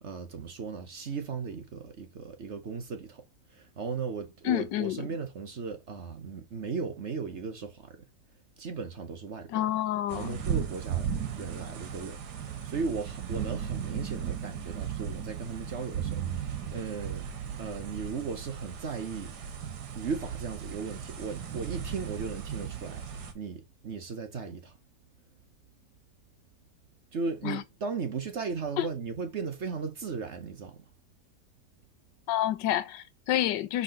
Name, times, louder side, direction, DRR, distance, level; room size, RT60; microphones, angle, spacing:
voice 1, 0.0-3.2 3.5-8.0 8.6-9.7 10.1-11.1 11.3-17.3 17.6-19.3 19.9-23.1 23.3-24.7 27.1-30.8, right 5 dB, 50° right, 1.0 m, -36 dB
voice 2, 4.4-5.0 9.5-10.4 27.4-27.6 28.8-28.9 32.3-33.8, left 12 dB, 85° left, 1.4 m, -28 dB
sound 1, 10.1-23.3, right 8 dB, 70° right, 1.8 m, -36 dB
5.5 x 3.6 x 5.7 m
omnidirectional pair, 1.9 m